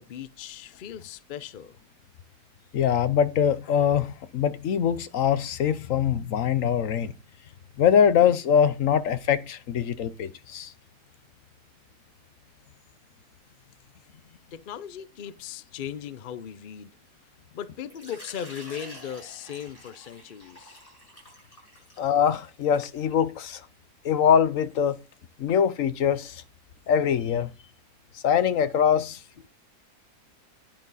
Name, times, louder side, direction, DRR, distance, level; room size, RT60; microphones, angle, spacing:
voice 1, 0.0-1.8 14.5-16.9 17.5-20.8, left 9 dB, 80° left, 0.4 m, -38 dB
voice 2, 2.7-7.1 7.8-10.7 22.0-23.7 24.0-25.0 25.4-26.4 26.9-27.5 28.1-29.2, left 8 dB, 60° left, 1.1 m, -23 dB
Water / Liquid, 17.9-23.4, equal, 20° left, 7.1 m, -48 dB
9.8 x 8.9 x 4.0 m
omnidirectional pair, 1.8 m